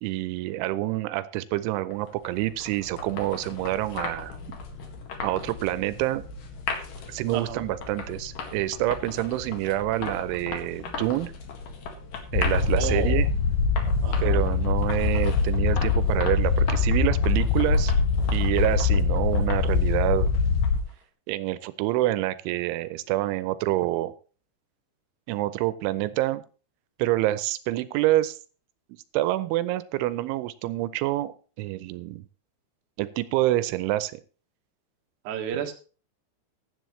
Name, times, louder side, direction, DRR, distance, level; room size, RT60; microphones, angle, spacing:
voice 1, 0.0-4.4 5.2-6.2 7.1-11.3 12.3-13.3 14.2-17.9 18.3-20.3 21.3-24.1 25.3-26.4 27.0-28.4 29.1-32.2 33.0-34.2, right 16 dB, 85° right, 15 dB, 3.1 m, -27 dB
sound 1, 1.9-20.9, left 5 dB, 55° left, 3.0 m, -38 dB
voice 2, 7.3-7.7 12.8-13.2 13.8-14.4 35.2-35.7, right 7 dB, 60° right, 4 dB, 2.4 m, -32 dB
sound 2, 12.3-20.8, left 4 dB, 70° left, 2.1 m, -23 dB
15.5 x 11.0 x 3.2 m, 0.37 s
omnidirectional pair, 5.4 m